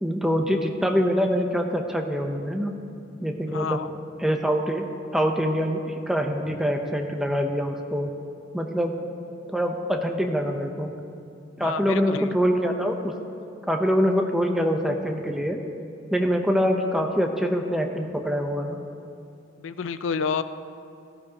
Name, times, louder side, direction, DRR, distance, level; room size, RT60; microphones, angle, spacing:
voice 1, 0.0-2.7 3.2-3.8 4.2-4.9 5.1-8.1 8.5-8.9 9.5-10.9 11.6-13.1 13.7-15.6 16.1-18.8, equal, ahead, 3 dB, 0.8 m, -24 dB
voice 2, 3.5-3.9 11.6-12.3 19.6-20.4, left 6 dB, 80° left, 12 dB, 0.5 m, -29 dB
17.0 x 14.0 x 2.9 m, 2.5 s
head